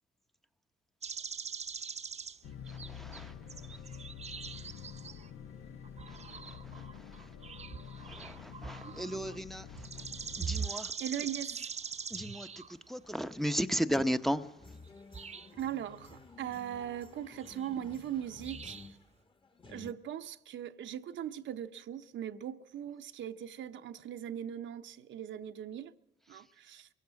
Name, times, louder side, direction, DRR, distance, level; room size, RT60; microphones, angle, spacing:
sound 1, 1.0-2.4 2.7-5.3 5.8-9.4 9.7-12.7 14.9-15.0 15.1-15.5 17.4-17.7 18.4-18.9, right 6 dB, 35° right, 0.8 m, -42 dB
sound 2, 2.4-10.7, left 8 dB, 80° left, 1.3 m, -47 dB
voice 1, 2.9-3.3 8.1-9.7 10.4-10.9 12.1-12.5 12.9-14.5, equal, ahead, 0.8 m, -34 dB
voice 2, 11.0-11.7 15.6-18.8 19.7-25.9 26.3-26.9, right 10 dB, 70° right, 0.9 m, -40 dB
sound 3, 14.6-19.9, left 3 dB, 25° left, 1.4 m, -53 dB
22.0 x 16.5 x 7.5 m
cardioid pair, 90°, 20 cm